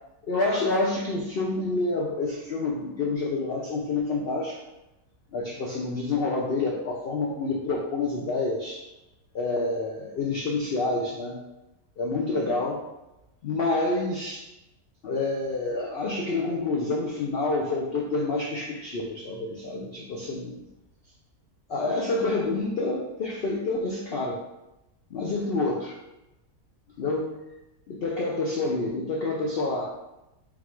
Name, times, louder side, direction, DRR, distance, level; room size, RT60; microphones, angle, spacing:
voice 1, 0.2-4.6 5.3-8.8 9.3-11.4 12.0-12.8 13.4-14.4 15.0-20.6 21.7-24.4 25.1-26.0 27.0-27.4 27.9-29.9, left 3 dB, 85° left, -2 dB, 0.5 m, -28 dB
3.9 x 2.4 x 4.3 m, 0.94 s
omnidirectional pair, 1.7 m